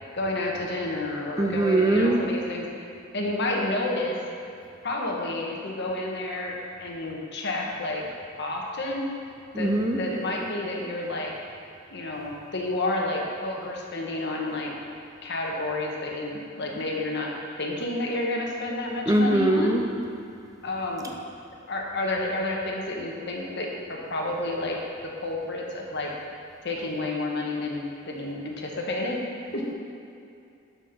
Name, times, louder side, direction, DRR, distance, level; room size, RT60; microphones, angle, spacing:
voice 1, 0.1-4.2 4.8-8.1 8.4-9.1 9.5-11.3 11.9-14.7 15.2-17.3 17.6-19.8 20.6-21.1 21.7-24.8 25.2-26.1 26.6-29.2 29.5-29.6, left 2 dB, 55° left, -1 dB, 1.3 m, -30 dB
voice 2, 1.4-2.2 9.5-10.0 19.1-19.8, right 1 dB, 15° right, 2 dB, 0.5 m, -21 dB
11.5 x 4.5 x 5.4 m, 2.6 s
head